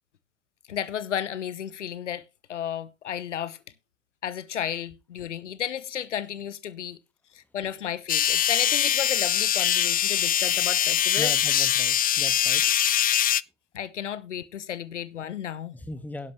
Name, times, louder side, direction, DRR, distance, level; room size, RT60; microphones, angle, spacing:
voice 1, 0.7-3.6 4.2-7.0 7.3-11.3 13.7-15.7, left 9 dB, 85° left, 1.1 m, -33 dB
sound 1, 8.1-13.4, left 11 dB, 25° left, 0.5 m, -23 dB
voice 2, 11.2-12.6 15.7-16.3, left 1 dB, 5° left, 1.6 m, -38 dB
11.5 x 11.5 x 3.1 m
hypercardioid pair, 75°, 35 cm